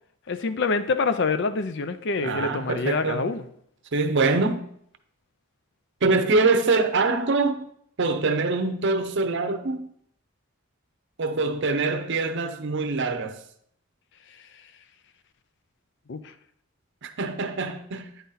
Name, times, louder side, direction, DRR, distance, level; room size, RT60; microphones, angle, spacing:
voice 1, 0.3-3.5 16.1-16.2, left 4 dB, 60° left, 0.5 m, -26 dB
voice 2, 2.2-3.3 3.9-4.6 6.0-7.7 8.0-9.9 11.2-13.4 17.0-18.1, right 3 dB, 60° right, 0.7 m, -24 dB
9.3 x 4.1 x 4.0 m
head